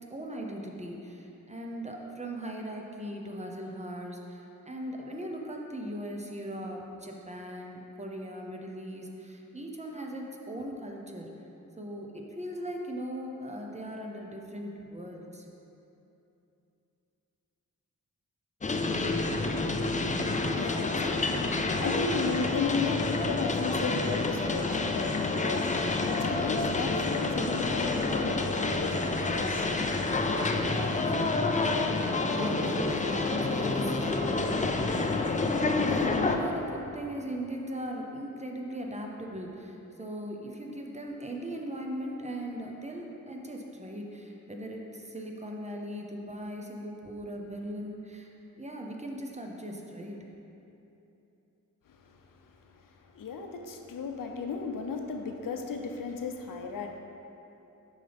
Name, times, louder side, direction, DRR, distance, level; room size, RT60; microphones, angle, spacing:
voice 1, 0.1-11.3 11.8-15.5 30.3-31.3 31.6-48.3 48.6-50.2, equal, 20° right, 1 dB, 0.7 m, -39 dB
sound 1, 18.6-36.4, left 3 dB, 25° left, 0.4 m, -28 dB
voice 2, 20.0-29.7 30.6-31.0 52.1-52.2 53.0-57.0, left 4 dB, 90° left, 4 dB, 0.6 m, -35 dB
7.3 x 5.5 x 3.5 m, 2.9 s
wide cardioid pair, 85°, 32 cm